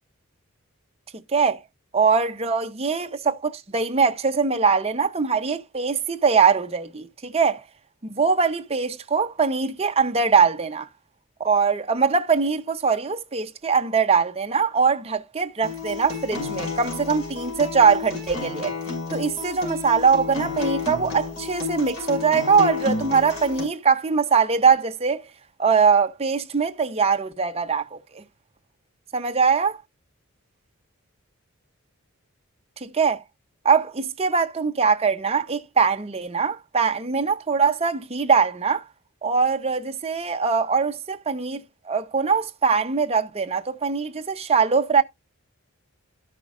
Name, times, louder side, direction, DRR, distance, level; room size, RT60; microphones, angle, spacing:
voice 1, 1.9-7.6 8.0-10.9 11.4-18.7 19.1-25.2 25.6-28.2 29.1-29.8 32.8-33.2 33.6-38.8 39.2-45.0, right 5 dB, 30° right, 0.7 m, -22 dB
Acoustic guitar, 15.6-23.6, left 5 dB, 85° left, 5.9 m, -31 dB
13.5 x 5.7 x 2.5 m
head